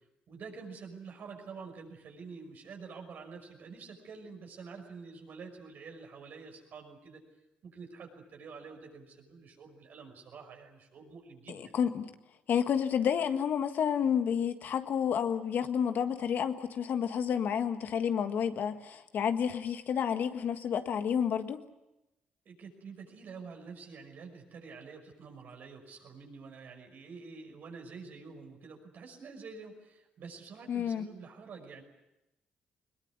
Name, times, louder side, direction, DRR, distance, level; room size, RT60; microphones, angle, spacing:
voice 1, 0.3-7.2 7.6-11.7 22.5-31.8, right 5 dB, 65° right, 3 dB, 5.7 m, -48 dB
voice 2, 11.5-12.1 12.5-21.6 30.7-31.1, left 8 dB, 70° left, 8 dB, 1.6 m, -30 dB
21.0 x 20.5 x 9.6 m, 0.95 s
cardioid pair, 75°, 3 cm